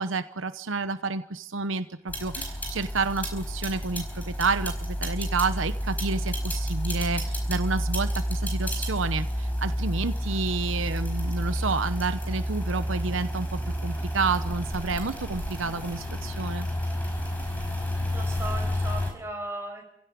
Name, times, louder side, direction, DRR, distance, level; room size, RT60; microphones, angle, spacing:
voice 1, 0.0-16.7, right 4 dB, 80° right, 11 dB, 1.0 m, -30 dB
reel to reel tape machine start stop rewind nice end, 2.1-19.1, equal, 10° left, 4.8 m, -30 dB
voice 2, 18.0-19.9, right 1 dB, 15° right, 1 dB, 6.2 m, -37 dB
27.0 x 16.5 x 8.6 m, 0.79 s
head